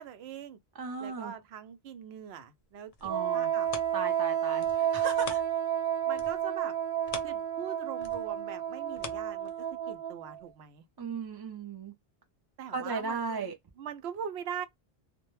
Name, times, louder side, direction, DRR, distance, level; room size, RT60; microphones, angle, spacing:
voice 1, 0.0-0.6 1.0-3.7 6.1-6.8 7.2-10.9 12.6-14.7, right 8 dB, 85° right, 0.8 m, -42 dB
voice 2, 0.8-1.3 3.0-3.5 3.9-5.4 11.0-11.9 12.7-13.5, right 4 dB, 35° right, 0.4 m, -36 dB
sound 1, 2.7-5.8 6.1-9.9 10.4-10.5, left 5 dB, 45° left, 0.5 m, -46 dB
Wind instrument woodwind instrument, 3.1-10.4, right 10 dB, 55° right, 0.7 m, -31 dB
2.2 x 2.1 x 3.0 m
omnidirectional pair, 1.0 m